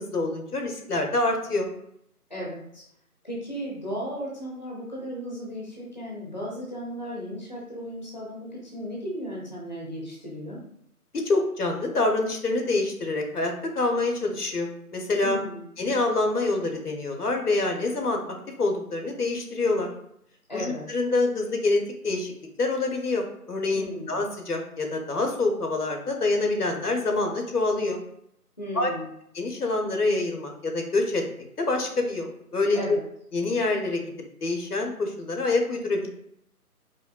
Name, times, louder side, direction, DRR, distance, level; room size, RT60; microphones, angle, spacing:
voice 1, 0.0-1.7 11.2-15.4 15.8-19.9 20.5-22.3 22.6-28.0 28.7-28.9 29.3-31.2 31.6-33.0 33.3-34.0 34.4-36.1, left 2 dB, 75° left, 3 dB, 0.9 m, -26 dB
voice 2, 2.3-2.8 3.2-10.6 15.2-15.6 20.5-20.8 23.7-24.1 28.6-29.1 32.7-33.0, equal, 30° left, -5 dB, 0.6 m, -35 dB
4.8 x 2.2 x 2.3 m, 0.72 s
figure-of-eight pair, 155°, 46 cm